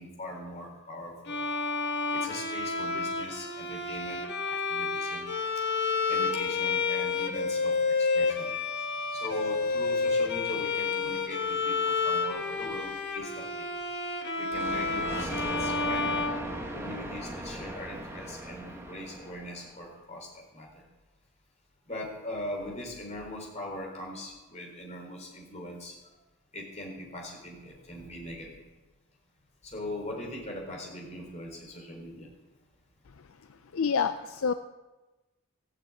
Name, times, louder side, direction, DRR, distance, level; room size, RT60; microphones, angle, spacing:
voice 1, 0.0-1.4 2.1-4.2 4.5-5.3 6.1-7.7 8.1-8.5 9.2-13.7 14.4-16.1 16.7-20.3 20.5-20.7 21.9-25.9 26.5-28.5 29.6-32.3, left 1 dB, 30° left, -1 dB, 3.8 m, -40 dB
Bowed string instrument, 1.3-17.1, left 4 dB, 50° left, 1.4 m, -30 dB
Thunder, 14.5-19.9, right 1 dB, 10° right, 1.2 m, -39 dB
voice 2, 33.7-34.5, left 6 dB, 65° left, 9 dB, 0.5 m, -27 dB
16.5 x 6.7 x 8.7 m, 1.1 s
head